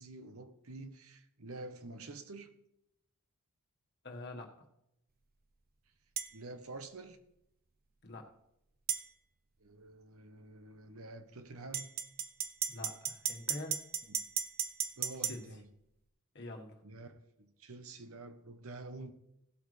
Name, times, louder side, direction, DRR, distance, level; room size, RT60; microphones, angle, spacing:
voice 1, 0.0-2.5 6.3-7.2 9.6-11.9 14.1-14.3 15.0-15.7 16.8-19.1, right 2 dB, 70° right, 1.0 m, -48 dB
voice 2, 4.0-4.5 8.0-8.3 12.7-13.8 15.3-15.4 16.3-16.8, left 2 dB, 50° left, 1.5 m, -45 dB
sound 1, 6.2-6.3 8.9-9.0 11.7-15.4, right 8 dB, 45° right, 0.6 m, -35 dB
16.5 x 8.3 x 3.3 m
head